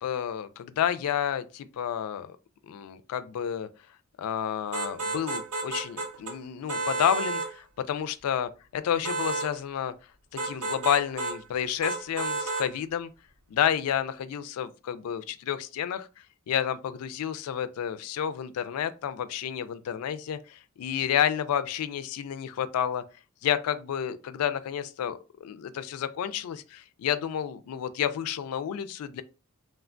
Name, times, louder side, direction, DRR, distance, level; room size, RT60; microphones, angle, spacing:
voice 1, 0.0-2.3 2.7-3.7 4.2-9.9 10.3-13.1 13.5-16.1 16.5-23.0 23.4-29.2, left 9 dB, 80° left, 0.3 m, -30 dB
sound 1, 4.7-6.3 6.7-7.5 9.0-9.5 10.4-11.4 11.8-12.7, right 3 dB, 75° right, 0.6 m, -31 dB
3.2 x 2.1 x 2.4 m
head